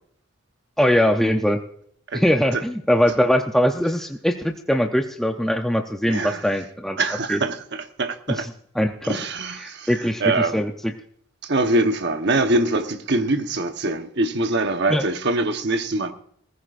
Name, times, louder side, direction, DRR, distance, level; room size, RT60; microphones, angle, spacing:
voice 1, 0.8-1.6 2.1-7.0 7.3-7.4 8.8-9.1 9.6-10.2 10.5-10.9 14.9-15.0, equal, ahead, 0.5 m, -21 dB
voice 2, 6.1-6.5 7.0-8.5 9.0-10.6 11.4-16.1, right 2 dB, 55° right, 1.0 m, -23 dB
19.0 x 14.5 x 2.5 m
head